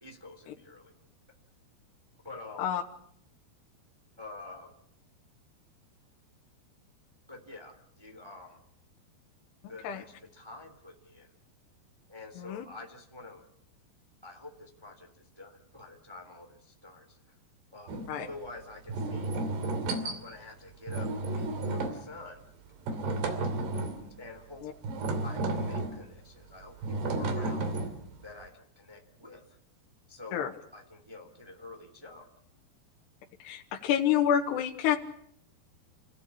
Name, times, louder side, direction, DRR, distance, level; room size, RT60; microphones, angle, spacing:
voice 1, 0.0-0.9 2.2-2.7 4.2-4.7 7.3-8.6 9.7-11.3 12.1-13.5 14.2-17.2 17.7-19.3 20.0-22.4 24.2-24.7 25.2-27.7 28.2-29.6 30.1-32.3, left 3 dB, 10° right, 3 dB, 2.5 m, -47 dB
sound 1, 17.9-18.1 18.9-20.2 20.9-22.1 22.9-24.1 24.8-26.0 26.8-28.2, right 2 dB, 75° right, 4.7 m, -32 dB
voice 2, 33.4-35.0, left 9 dB, 75° left, 2 dB, 3.5 m, -28 dB
29.5 x 16.5 x 8.6 m, 0.68 s
omnidirectional pair, 4.8 m